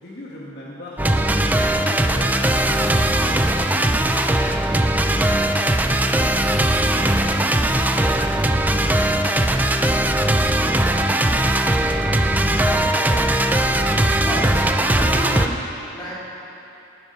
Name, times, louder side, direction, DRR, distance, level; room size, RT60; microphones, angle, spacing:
voice 1, 0.0-3.5, left 1 dB, 60° left, -4 dB, 1.7 m, -38 dB
sound 1, 1.0-15.5, right 1 dB, 10° right, 0.5 m, -19 dB
voice 2, 12.6-13.3 14.2-16.1, equal, 25° left, -8 dB, 3.8 m, -33 dB
19.0 x 11.0 x 5.5 m, 2.9 s
head